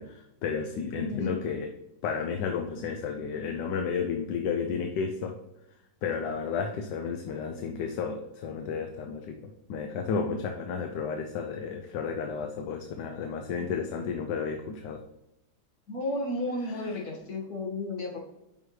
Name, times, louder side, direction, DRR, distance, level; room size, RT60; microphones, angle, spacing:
voice 1, 0.0-1.7 2.0-5.4 6.0-9.4 9.7-15.0 16.6-17.0, left 6 dB, 80° left, 5 dB, 1.3 m, -32 dB
voice 2, 0.9-1.4 15.9-18.2, left 2 dB, 60° left, -1 dB, 2.2 m, -33 dB
9.2 x 5.6 x 3.2 m, 0.90 s
omnidirectional pair, 1.9 m